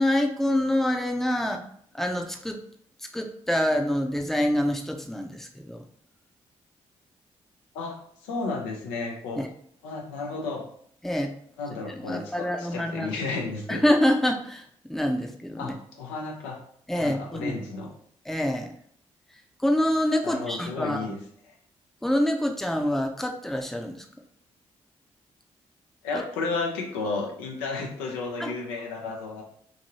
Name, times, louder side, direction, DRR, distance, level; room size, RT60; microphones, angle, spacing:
voice 1, 0.0-1.6 1.9-2.6 3.1-5.8 9.4-9.5 11.0-11.3 12.1-13.2 13.7-15.7 16.9-17.5 18.3-18.7 19.6-21.0 22.0-24.1 26.1-26.2 28.4-28.5, left 1 dB, ahead, 3 dB, 0.5 m, -26 dB
voice 2, 7.7-9.4 9.8-10.6 11.6-13.8 15.6-16.6 17.0-17.9 20.2-21.2 26.0-29.4, left 3 dB, 85° left, 1 dB, 0.5 m, -33 dB
2.8 x 2.6 x 2.8 m, 0.63 s
hypercardioid pair, 40°, 14 cm